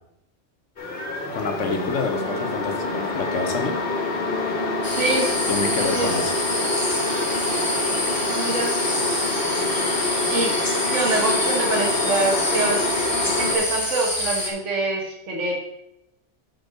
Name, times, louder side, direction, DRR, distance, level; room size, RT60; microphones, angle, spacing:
sound 1, 0.8-13.6, left 2 dB, 50° left, 1.5 m, -26 dB
voice 1, 1.3-3.8 5.5-6.3, left 4 dB, 90° left, 5 dB, 1.4 m, -27 dB
sound 2, 4.8-14.5, left 1 dB, 20° left, 1.1 m, -27 dB
voice 2, 5.0-5.3 5.8-6.1 8.3-8.7 10.3-10.5 10.9-12.8 13.3-15.5, right 2 dB, 85° right, -1 dB, 1.6 m, -25 dB
8.1 x 4.4 x 5.4 m, 0.85 s
omnidirectional pair, 1.2 m